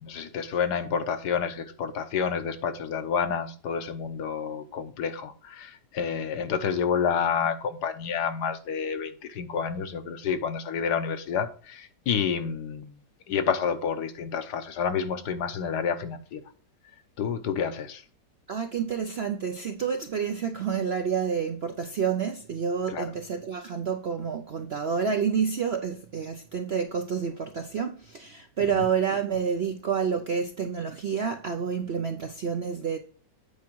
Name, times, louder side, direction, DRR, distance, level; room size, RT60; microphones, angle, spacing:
voice 1, 0.0-12.9 13.3-16.4 17.2-18.0 22.9-23.1, left 7 dB, 70° left, 1.4 m, -29 dB
voice 2, 18.5-33.0, right 6 dB, 60° right, 0.6 m, -29 dB
8.7 x 4.7 x 4.6 m
omnidirectional pair, 1.9 m